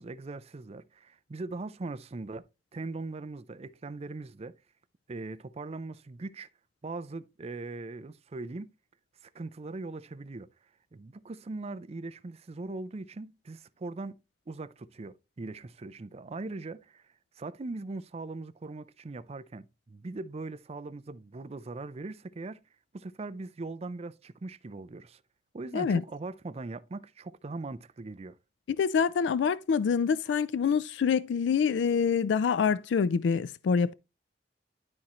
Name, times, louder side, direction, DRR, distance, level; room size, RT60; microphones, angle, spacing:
voice 1, 0.0-2.5 2.7-4.5 5.1-6.5 6.8-8.7 9.2-10.5 10.9-14.2 14.5-17.0 17.4-22.6 22.9-25.2 25.5-28.4, right 3 dB, 35° right, 0.5 m, -40 dB
voice 2, 28.8-33.9, left 6 dB, 80° left, 0.3 m, -26 dB
11.5 x 4.3 x 3.0 m
head